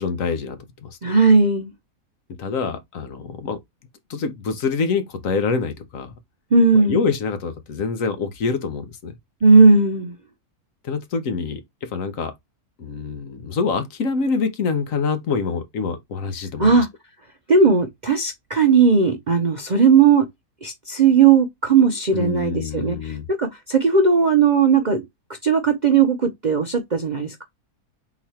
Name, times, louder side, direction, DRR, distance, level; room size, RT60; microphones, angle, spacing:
voice 1, 0.0-0.9 2.4-3.6 4.1-6.1 6.7-9.1 10.8-12.3 12.8-16.8 22.1-23.2, left 5 dB, 65° left, 1.2 m, -26 dB
voice 2, 1.0-1.7 6.5-7.0 9.4-10.1 16.6-16.9 17.5-20.3 20.6-25.0 25.4-27.4, right 5 dB, 45° right, 0.6 m, -17 dB
4.0 x 3.0 x 4.2 m
omnidirectional pair, 1.6 m